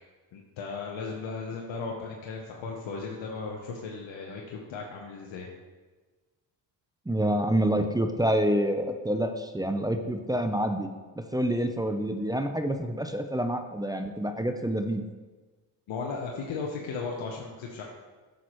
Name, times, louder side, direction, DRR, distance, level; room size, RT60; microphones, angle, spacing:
voice 1, 0.3-5.5 15.9-17.8, left 4 dB, 80° left, -1 dB, 1.0 m, -36 dB
voice 2, 7.1-10.9 11.2-15.0, right 1 dB, 10° right, 6 dB, 0.6 m, -27 dB
9.2 x 6.6 x 3.1 m, 1.3 s
cardioid pair, 75°, 45 cm